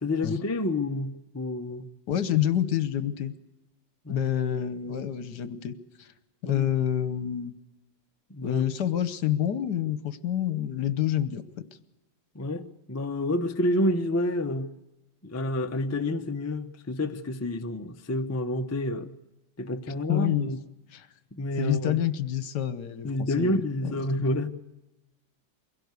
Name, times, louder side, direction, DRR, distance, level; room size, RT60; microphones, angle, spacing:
voice 1, 0.0-1.8 4.0-4.3 6.4-6.7 8.3-8.6 12.3-14.7 15.2-19.1 19.6-20.6 21.3-22.0 23.0-24.5, left 1 dB, 20° left, 0.5 m, -29 dB
voice 2, 2.1-3.3 4.1-6.1 6.4-7.5 8.4-11.7 19.9-20.5 20.9-21.1 21.6-23.9, left 10 dB, 70° left, 1.5 m, -28 dB
23.5 x 16.5 x 8.1 m
omnidirectional pair, 1.9 m